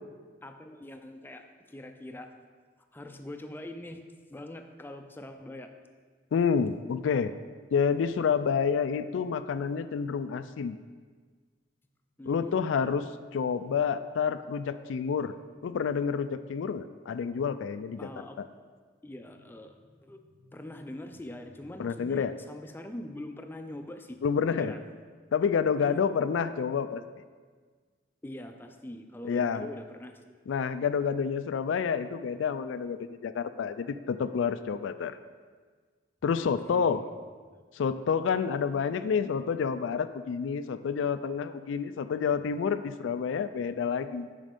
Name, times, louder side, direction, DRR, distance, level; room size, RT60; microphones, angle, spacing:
voice 1, 0.4-2.3 2.9-4.0 4.3-5.7 12.2-12.6 18.0-18.4 19.0-24.2 24.5-24.8 25.8-26.1 28.2-30.2 36.5-37.1, left 1 dB, 10° left, 6 dB, 0.4 m, -43 dB
voice 2, 6.3-7.3 7.7-10.8 12.3-15.3 15.6-18.0 18.4-18.5 21.8-22.3 24.2-24.7 25.3-27.0 29.2-29.7 30.5-35.2 36.2-37.0 37.7-44.3, left 6 dB, 80° left, 12 dB, 0.3 m, -29 dB
7.4 x 5.2 x 5.2 m, 1.5 s
head